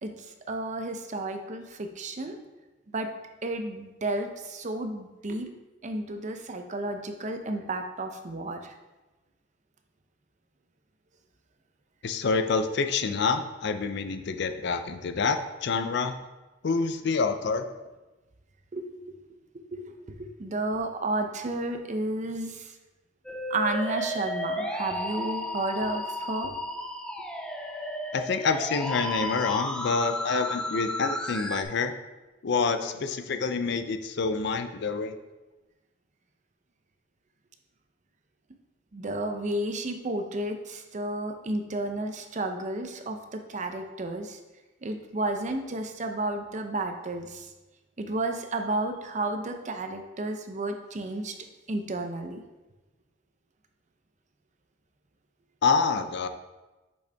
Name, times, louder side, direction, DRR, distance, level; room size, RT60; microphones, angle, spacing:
voice 1, 0.5-2.4 2.9-3.1 3.4-5.5 5.8-8.7 18.7-18.8 19.7-22.7 23.5-26.6 38.9-44.4 44.8-47.5 48.0-51.3 51.7-52.4, right 2 dB, 40° right, 6 dB, 0.6 m, -32 dB
voice 2, 12.0-16.1 16.6-17.7 28.1-31.9 32.4-35.1 55.6-56.3, left 4 dB, 60° left, 8 dB, 0.5 m, -27 dB
Musical instrument, 23.2-31.6, left 1 dB, 5° left, 0.4 m, -33 dB
6.4 x 5.5 x 3.4 m, 1.1 s
head